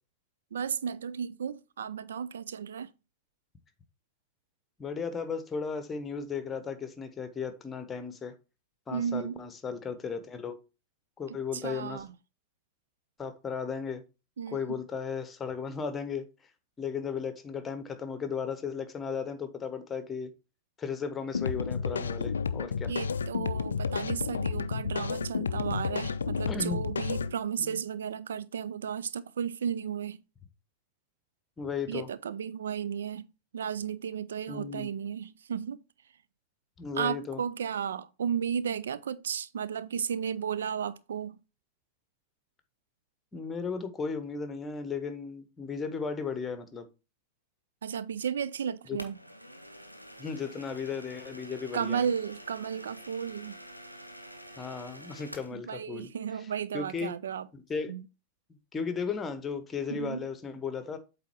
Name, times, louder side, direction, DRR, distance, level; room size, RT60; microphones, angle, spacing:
voice 1, 0.5-2.9 8.9-9.4 11.3-12.1 14.4-14.8 22.9-30.2 31.9-33.3 33.5-35.8 37.0-41.4 47.8-49.2 51.7-53.6 55.5-57.5 57.9-58.1 59.9-60.3, right 7 dB, 65° right, 0.3 m, -34 dB
voice 2, 4.8-8.3 8.9-10.6 11.2-12.0 13.2-14.0 14.5-16.3 16.8-20.3 20.8-22.9 26.5-26.8 27.6-27.8 31.6-32.1 34.5-34.9 36.8-37.4 43.3-46.9 48.9-49.0 50.2-52.0 54.6-56.1 56.7-57.1 57.5-57.9 58.7-61.0, left 5 dB, 20° left, 1.0 m, -35 dB
sound 1, 21.3-27.3, left 5 dB, 70° left, 0.3 m, -31 dB
sound 2, 49.0-55.6, equal, 90° right, 0.8 m, -47 dB
8.1 x 3.5 x 4.5 m
figure-of-eight pair, 90°, 0 cm